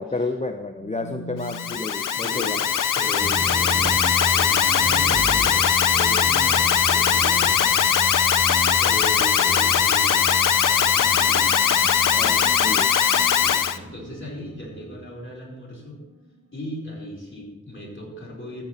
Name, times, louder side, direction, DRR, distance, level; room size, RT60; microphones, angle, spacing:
voice 1, 0.0-2.6 12.2-12.9, left 3 dB, 20° left, 6 dB, 0.7 m, -30 dB
sound 1, 0.8-17.5, equal, 60° right, 4.6 m, -45 dB
Alarm, 1.4-13.8, left 8 dB, 75° left, 0.6 m, -20 dB
voice 2, 2.1-5.6 5.9-7.9 8.8-11.7 13.3-16.0 16.5-18.6, equal, 35° left, -3 dB, 4.5 m, -37 dB
sound 2, 3.2-15.1, right 2 dB, 20° right, 0.9 m, -34 dB
13.0 x 8.7 x 4.3 m, 1.1 s
cardioid pair, 40°, 32 cm